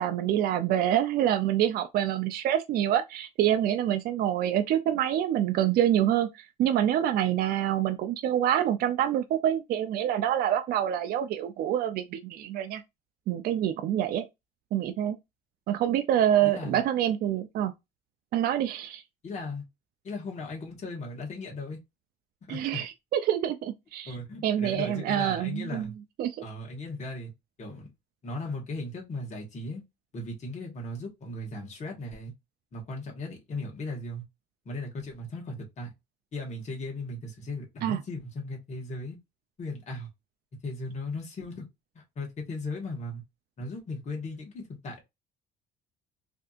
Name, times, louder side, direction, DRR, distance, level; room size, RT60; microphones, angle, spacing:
voice 1, 0.0-12.8 13.3-14.2 14.7-15.2 15.7-17.7 18.3-19.0 22.5-24.1 24.4-25.9 26.2-26.4 37.8-38.0, right 11 dB, 65° right, 0.4 m, -26 dB
voice 2, 16.4-16.8 19.2-19.6 20.0-21.8 22.5-22.8 24.0-26.0 26.4-27.3 27.6-27.9 28.2-29.8 30.1-32.3 32.7-34.2 34.6-35.9 36.3-39.2 39.6-40.1 40.6-41.7 41.9-43.2 43.6-45.0, left 2 dB, 45° left, 1.5 m, -37 dB
3.4 x 2.7 x 2.4 m
cardioid pair, 110°, 17 cm